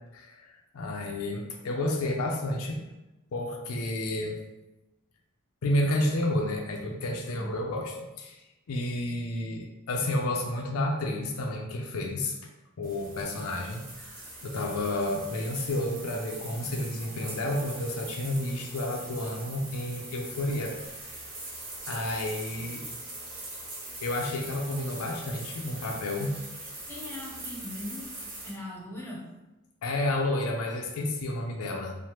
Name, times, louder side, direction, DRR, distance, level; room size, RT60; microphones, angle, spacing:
voice 1, 0.1-2.8 3.3-4.4 5.6-12.4 12.8-20.8 21.0-21.2 21.9-22.8 24.0-26.3 29.8-32.0, left 1 dB, 70° left, 1 dB, 0.4 m, -31 dB
sound 1, 12.8-28.5, right 2 dB, 70° right, 1.2 m, -42 dB
voice 2, 26.9-28.1 28.4-29.2, left 1 dB, 10° left, -4 dB, 0.6 m, -39 dB
3.2 x 2.0 x 2.9 m, 1.0 s
head